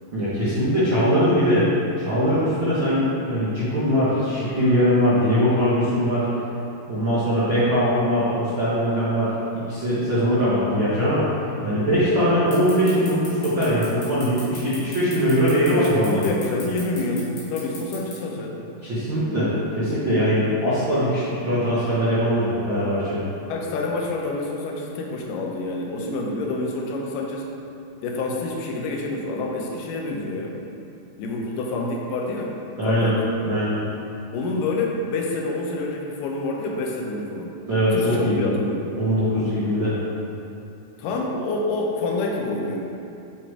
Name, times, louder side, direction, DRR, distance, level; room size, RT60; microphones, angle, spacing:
voice 1, 0.1-1.6 2.0-6.3 6.9-11.2 11.6-16.2 18.8-23.2 32.8-33.1 33.4-33.8 37.7-38.4 39.0-40.0, equal, 85° right, -12 dB, 1.0 m, -21 dB
sound 1, 12.5-18.1, left 4 dB, 55° left, 1.6 m, -38 dB
voice 2, 15.7-18.6 23.5-27.5 28.0-30.5 31.2-32.6 32.8-33.2 34.3-37.5 37.9-38.9 41.0-42.9, left 2 dB, 80° left, -1 dB, 2.1 m, -27 dB
8.9 x 3.1 x 4.8 m, 2.7 s
omnidirectional pair, 4.5 m